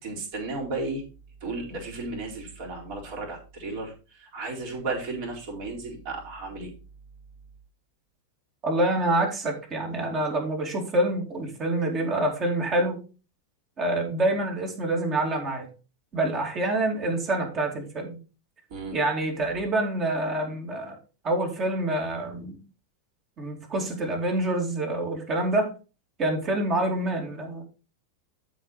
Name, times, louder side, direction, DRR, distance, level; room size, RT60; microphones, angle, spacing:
voice 1, 0.0-1.0 1.4-6.7 18.7-19.0, right 3 dB, 45° right, -1 dB, 4.1 m, -34 dB
voice 2, 8.6-13.0 13.8-15.7 16.1-18.2 18.9-21.0 21.2-22.6 23.4-25.7 26.2-27.6, right 1 dB, 30° right, 1 dB, 2.6 m, -26 dB
12.0 x 5.1 x 4.2 m, 0.33 s
figure-of-eight pair, 90°, 0 cm